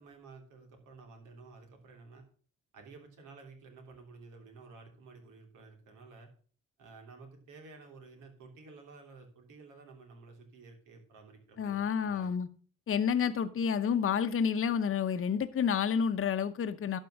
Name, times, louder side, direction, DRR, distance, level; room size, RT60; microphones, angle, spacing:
voice 1, 0.0-2.2 2.7-6.3 6.8-12.3, right 4 dB, 85° right, 3.0 m, -53 dB
voice 2, 11.6-12.5 12.9-17.0, left 7 dB, 45° left, 0.9 m, -29 dB
12.0 x 4.6 x 6.4 m
cardioid pair, 90°, 30 cm